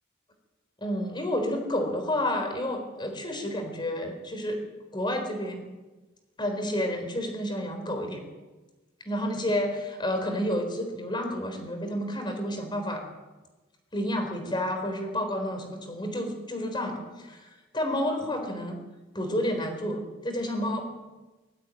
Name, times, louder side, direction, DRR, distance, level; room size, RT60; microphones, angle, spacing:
voice 1, 0.8-4.6 4.9-5.6 6.4-8.2 9.0-13.0 13.9-18.8 19.1-20.9, left 1 dB, 25° left, 5 dB, 4.1 m, -30 dB
19.5 x 14.0 x 9.3 m, 1.2 s
head